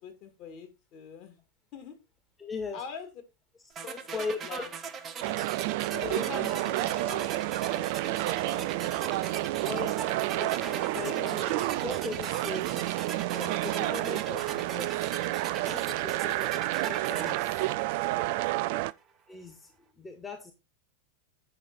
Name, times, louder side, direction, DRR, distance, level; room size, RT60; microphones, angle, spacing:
voice 1, 0.0-1.4 1.7-2.0 2.7-3.1 3.8-4.7 5.9-9.8 10.1-10.2, left 7 dB, 40° left, 5 dB, 2.4 m, -46 dB
voice 2, 2.4-2.8 4.1-4.7 6.0-6.6 9.6-9.9 10.2-15.1 15.6-16.5 16.8-17.7 19.3-20.5, left 4 dB, 15° left, 5 dB, 1.7 m, -39 dB
sound 1, 3.8-18.7, right 6 dB, 25° right, 1.1 m, -41 dB
sound 2, 5.2-18.9, right 17 dB, 50° right, 0.4 m, -30 dB
8.8 x 6.2 x 4.2 m, 0.25 s
figure-of-eight pair, 90°, 0 cm